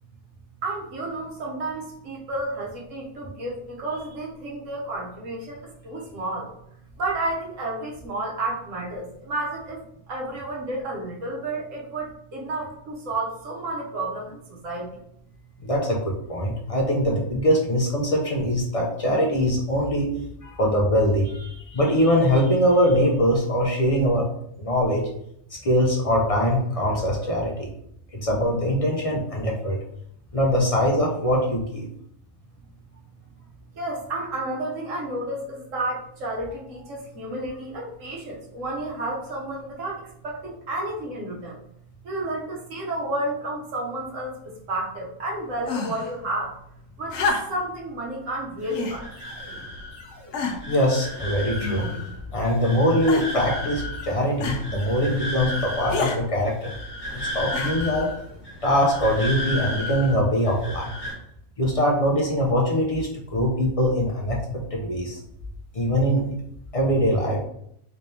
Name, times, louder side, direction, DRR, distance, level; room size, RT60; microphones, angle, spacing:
voice 1, 0.6-6.5 7.0-14.9 33.7-41.6 42.0-44.4 44.7-46.6 47.0-49.1, right 2 dB, 70° right, -2 dB, 1.2 m, -31 dB
voice 2, 15.6-20.1 20.4-24.2 24.6-25.0 25.6-27.7 28.1-29.8 30.3-31.8 50.7-51.8 52.3-56.7 57.3-58.1 58.6-60.9 61.6-64.4 64.7-65.2 65.7-66.3 66.7-67.4, equal, 45° left, -2 dB, 0.5 m, -22 dB
sound 1, 45.6-46.1 47.1-47.8 48.7-49.0 49.8-49.9 50.3-50.8 51.6-52.2 53.1-53.5 54.4-54.7 55.9-56.2 57.5-58.0 59.0-59.1, left 3 dB, 65° left, 0.8 m, -29 dB
sound 2, 48.6-61.1, left 1 dB, 20° left, 1.4 m, -34 dB
3.3 x 3.3 x 2.7 m, 0.73 s
omnidirectional pair, 1.4 m